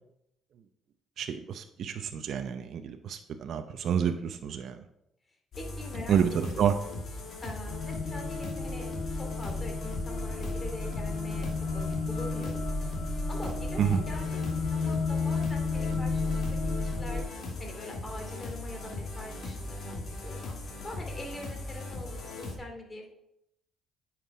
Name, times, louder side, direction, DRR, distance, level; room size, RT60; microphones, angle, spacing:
voice 1, 1.2-4.8 6.1-6.7 13.8-14.0, right 8 dB, 65° right, 7 dB, 0.7 m, -29 dB
sound 1, 5.5-22.5, left 2 dB, 60° left, 2.5 m, -39 dB
voice 2, 5.5-6.2 6.4-6.6 7.4-8.9 9.2-11.5 11.7-12.6 13.3-16.4 16.8-17.2 17.6-20.0 20.2-23.1, left 1 dB, 25° left, 2 dB, 2.7 m, -43 dB
sound 2, 7.7-17.2, left 3 dB, 40° left, 3.9 m, -32 dB
9.3 x 6.0 x 4.8 m, 0.80 s
supercardioid pair, 75°, 0 cm